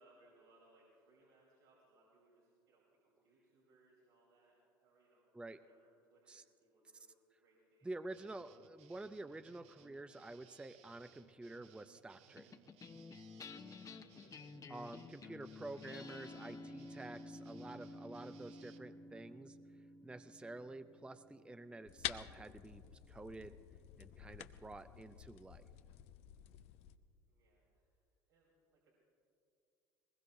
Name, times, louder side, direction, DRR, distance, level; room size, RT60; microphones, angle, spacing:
voice 1, 0.0-5.3 5.6-7.9 13.6-14.7 27.3-28.9, right 2 dB, 85° right, -5 dB, 3.4 m, -70 dB
voice 2, 7.8-12.6 14.7-19.6 20.0-23.6 24.0-25.7, right 2 dB, 10° right, 11 dB, 0.4 m, -49 dB
sound 1, 8.1-18.8, right 9 dB, 60° right, 0.9 m, -66 dB
sound 2, 12.4-23.0, left 3 dB, 30° left, 0.8 m, -53 dB
sound 3, 21.9-27.0, left 13 dB, 60° left, 0.6 m, -49 dB
21.0 x 20.0 x 2.6 m, 2.6 s
hypercardioid pair, 70°, 12 cm